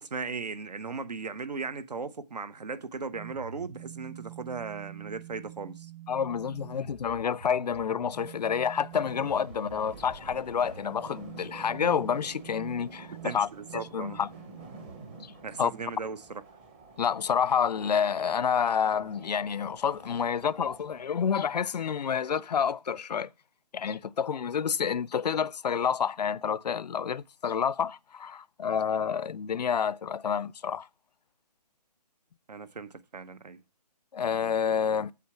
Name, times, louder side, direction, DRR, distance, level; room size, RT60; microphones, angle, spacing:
voice 1, 0.0-5.9 13.2-14.2 15.4-16.4 32.5-33.6, right 4 dB, 75° right, 1.1 m, -37 dB
sound 1, 3.1-15.9, right 10 dB, 50° right, 1.4 m, -47 dB
voice 2, 6.1-13.5 13.7-14.3 15.6-15.7 17.0-23.3 23.7-30.9 34.1-35.1, left 7 dB, 75° left, 0.5 m, -29 dB
sound 2, 8.9-21.1, right 3 dB, 15° right, 0.8 m, -50 dB
8.4 x 7.3 x 4.5 m
hypercardioid pair, 165°, 21 cm